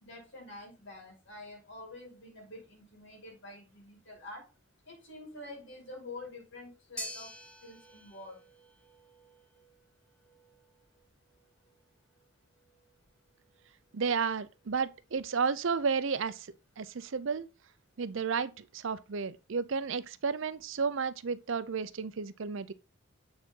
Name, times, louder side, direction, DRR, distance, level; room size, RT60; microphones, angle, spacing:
voice 1, 0.0-4.5 4.9-7.3 7.6-8.4, left 2 dB, 55° left, 2.4 m, -47 dB
sound 1, 7.0-15.3, equal, 5° left, 0.9 m, -50 dB
voice 2, 13.9-16.5 16.8-17.5 18.0-22.7, right 5 dB, 60° right, 0.5 m, -32 dB
8.8 x 4.1 x 3.7 m
head